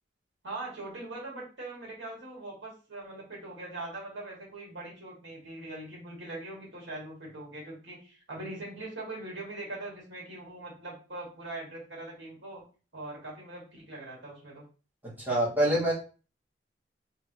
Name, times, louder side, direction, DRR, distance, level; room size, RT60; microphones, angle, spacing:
voice 1, 0.4-12.6 12.9-14.6, right 2 dB, 85° right, -3 dB, 2.2 m, -41 dB
voice 2, 15.0-15.9, right 1 dB, 10° right, -9 dB, 1.8 m, -26 dB
3.8 x 3.5 x 3.0 m, 0.36 s
head